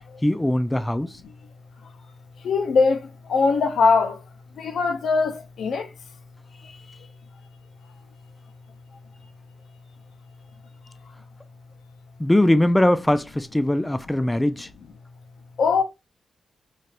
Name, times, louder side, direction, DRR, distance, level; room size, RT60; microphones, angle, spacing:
voice 1, 0.2-1.1 12.2-14.7, left 1 dB, 10° left, 0.3 m, -21 dB
voice 2, 2.4-3.0 3.3-4.2 4.6-5.8 15.6-15.8, left 4 dB, 80° left, 0.5 m, -20 dB
3.3 x 2.4 x 2.7 m
cardioid pair, 70°, 0 cm